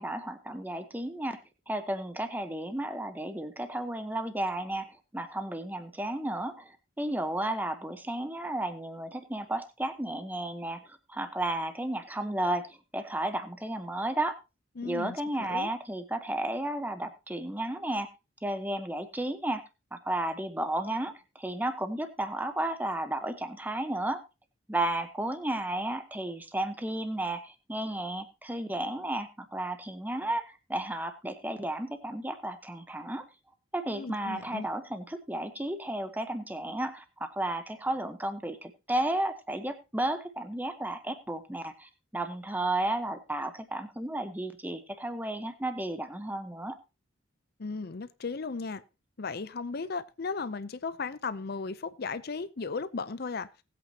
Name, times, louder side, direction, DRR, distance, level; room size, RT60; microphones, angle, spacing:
voice 1, 0.0-1.4 1.7-14.3 14.8-18.1 18.4-19.6 19.9-24.2 24.7-33.2 33.7-46.8, right 1 dB, 10° right, 1.0 m, -33 dB
voice 2, 14.8-15.7 33.9-34.7 47.6-48.8 49.2-53.5, left 4 dB, 50° left, 0.6 m, -36 dB
19.0 x 8.4 x 2.9 m
head